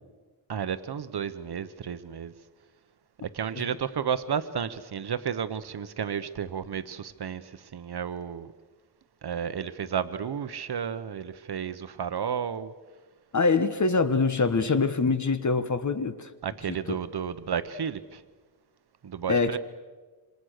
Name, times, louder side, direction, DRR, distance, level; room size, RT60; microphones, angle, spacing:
voice 1, 0.5-2.3 3.3-8.5 9.2-12.7 16.4-18.2 19.0-19.6, right 7 dB, 65° right, 12 dB, 1.0 m, -32 dB
voice 2, 13.3-16.3 16.7-17.0 19.3-19.6, left 4 dB, 45° left, 11 dB, 1.3 m, -24 dB
27.5 x 26.0 x 6.6 m, 1.3 s
wide cardioid pair, 120°, 41 cm